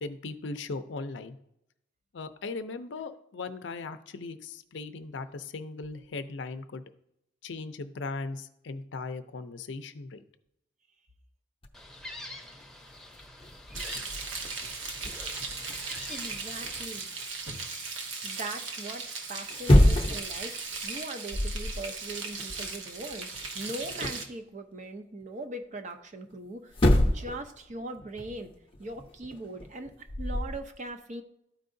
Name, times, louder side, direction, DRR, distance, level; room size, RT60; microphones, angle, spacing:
voice 1, 0.0-1.4 2.1-6.8 7.4-10.2, left 3 dB, 65° left, 10 dB, 0.5 m, -38 dB
sound 1, 11.6-12.0 12.6-12.7 12.9-17.2 19.4-20.3 20.7-20.9 21.3-21.8 22.1-24.3 26.3-26.4 26.7-27.4 27.7-30.6, left 1 dB, 30° left, 0.7 m, -28 dB
Gull seagull, 11.7-16.9, left 1 dB, ahead, 0.8 m, -45 dB
Frying (food), 13.7-24.2, right 4 dB, 90° right, 1.1 m, -38 dB
voice 2, 16.1-17.1 18.2-20.6 20.8-26.8 27.0-28.5 28.8-29.9 30.2-31.2, right 2 dB, 40° right, 7 dB, 0.7 m, -40 dB
13.0 x 4.7 x 2.6 m, 0.81 s
head